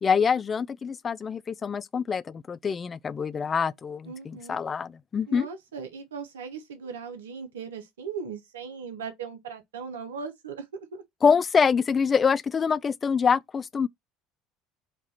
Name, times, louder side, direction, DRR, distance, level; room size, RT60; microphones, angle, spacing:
voice 1, 0.0-5.5 11.2-13.9, left 6 dB, 35° left, 0.3 m, -25 dB
voice 2, 4.0-4.6 5.3-11.0, right 6 dB, 85° right, 0.8 m, -38 dB
4.4 x 2.4 x 4.1 m
hypercardioid pair, 75°, 0 cm